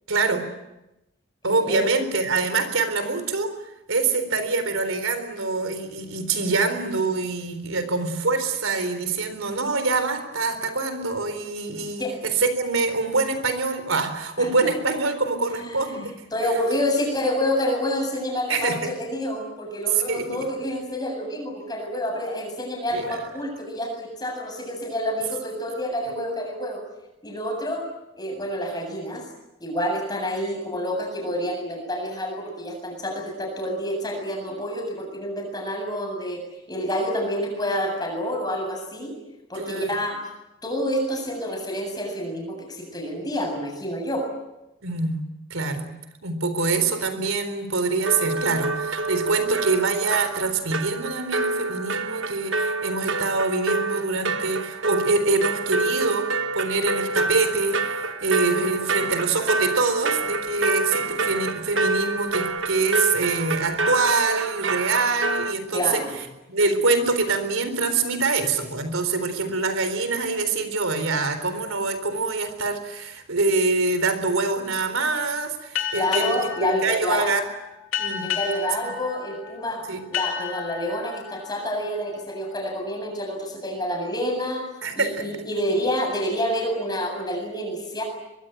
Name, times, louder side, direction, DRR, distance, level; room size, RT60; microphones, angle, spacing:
voice 1, 0.1-0.5 1.4-3.5 3.9-16.1 18.5-18.9 20.1-20.4 22.9-23.2 26.1-26.2 39.6-39.9 44.8-45.2 45.5-45.9 46.2-66.0 66.5-77.4 78.0-78.3 78.8-78.9 79.9-80.0 84.8-85.3, right 3 dB, 85° right, 10 dB, 3.9 m, -25 dB
voice 2, 1.4-1.9 12.0-12.2 14.4-14.5 15.6-26.8 27.2-27.9 28.2-29.2 29.6-36.4 36.7-39.2 39.5-40.3 40.6-44.3 65.7-66.1 75.9-77.3 78.2-84.7 84.9-88.0, equal, 20° left, 2 dB, 7.8 m, -28 dB
sound 1, 48.0-65.5, right 3 dB, 70° right, 1.4 m, -27 dB
sound 2, 75.8-83.0, left 8 dB, 80° left, 3.5 m, -33 dB
24.0 x 23.0 x 9.2 m, 0.95 s
head